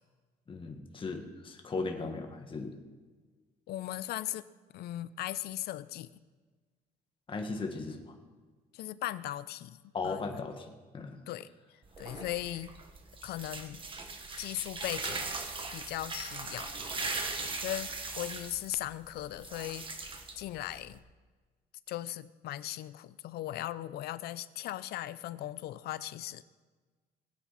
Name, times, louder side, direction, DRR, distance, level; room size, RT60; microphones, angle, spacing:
voice 1, 0.5-2.8 7.3-8.1 9.9-10.6 10.9-11.2, left 3 dB, 30° left, 3 dB, 1.8 m, -37 dB
voice 2, 3.7-4.5 4.7-6.1 8.7-9.8 10.0-10.4 11.3-12.7 13.2-13.8 14.4-15.3 15.7-16.7 17.4-20.1 20.4-21.0 21.9-26.4, left 14 dB, 70° left, 16 dB, 0.6 m, -38 dB
sound 1, 11.8-21.0, right 3 dB, 30° right, 1.6 m, -39 dB
21.0 x 8.6 x 4.2 m, 1.4 s
cardioid pair, 110°, 17 cm